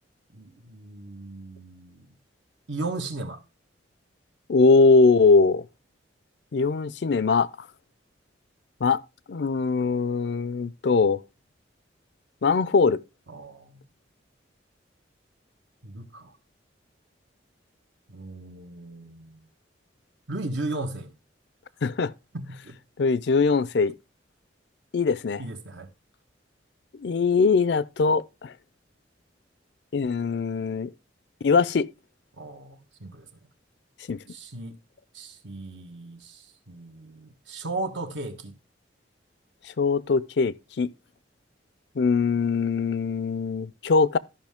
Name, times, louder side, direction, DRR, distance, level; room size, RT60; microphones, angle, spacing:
voice 1, 0.3-2.1 2.7-3.4 13.3-13.8 15.8-16.3 18.1-19.4 20.3-21.1 22.3-22.7 25.4-25.9 32.4-33.3 34.3-34.7 35.1-38.5, right 2 dB, 70° right, 1.2 m, -36 dB
voice 2, 4.5-5.6 6.5-7.5 8.8-9.0 9.3-11.2 12.4-13.0 21.8-22.1 23.0-23.9 24.9-25.4 27.0-28.5 29.9-30.9 31.4-31.9 34.1-34.2 39.8-40.9 42.0-44.2, left 4 dB, 60° left, 0.4 m, -21 dB
13.0 x 5.5 x 3.5 m
head